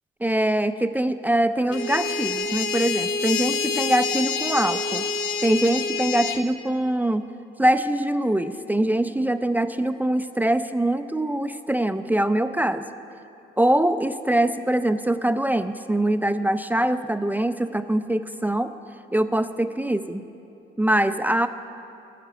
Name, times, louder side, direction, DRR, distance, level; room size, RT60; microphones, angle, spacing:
voice 1, 0.2-5.0 5.4-7.2 7.6-12.8 13.6-18.7 19.1-20.2 20.8-21.5, right 1 dB, 10° right, 10 dB, 0.4 m, -23 dB
sound 1, 1.7-6.4, left 5 dB, 90° left, 0.8 m, -27 dB
11.5 x 6.7 x 9.1 m, 2.8 s
cardioid pair, 90°, 20 cm